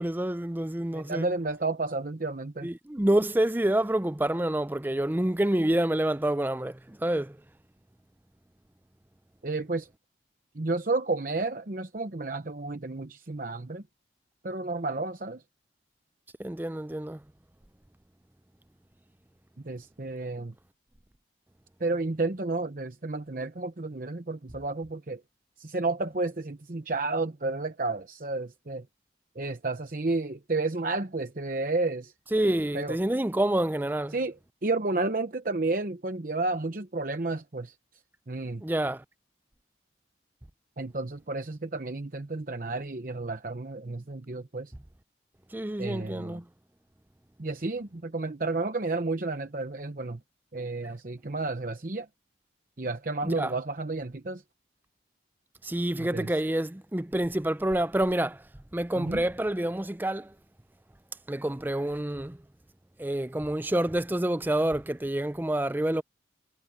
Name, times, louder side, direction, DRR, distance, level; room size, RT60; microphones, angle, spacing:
voice 1, 0.0-1.3 2.6-7.4 16.4-17.2 32.3-34.1 38.6-39.0 45.5-46.4 53.2-53.5 55.6-58.5 58.7-60.3 61.3-62.4 63.0-66.0, right 1 dB, 10° right, 0.5 m, -28 dB
voice 2, 0.9-2.7 9.4-9.9 10.5-13.8 14.4-15.4 19.6-20.5 21.8-25.2 25.6-28.9 29.3-32.1 32.7-33.0 34.1-37.7 38.3-38.6 40.8-44.7 45.8-46.4 47.4-50.2 50.5-52.1 52.8-54.4 56.0-56.3 59.0-59.2, right 3 dB, 50° right, 0.9 m, -31 dB
head